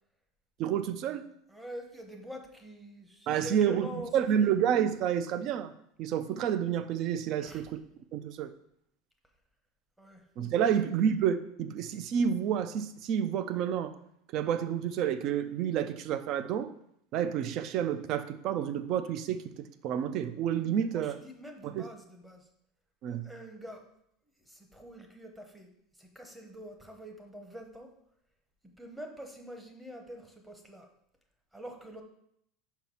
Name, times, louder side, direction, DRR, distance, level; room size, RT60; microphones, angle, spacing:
voice 1, 0.6-1.3 3.3-5.7 6.0-7.8 8.1-8.5 10.4-14.0 14.3-16.7 17.1-19.4 19.8-21.2 21.6-21.9 23.0-23.3, right 9 dB, 40° right, 0.5 m, -29 dB
voice 2, 1.5-4.6 7.4-7.7 10.0-10.3 10.6-10.7 20.8-22.5 23.1-23.9 24.4-25.7 26.0-27.9 28.8-30.9 31.5-32.0, equal, 5° right, 0.8 m, -45 dB
5.6 x 4.6 x 5.4 m
supercardioid pair, 155°, 0 cm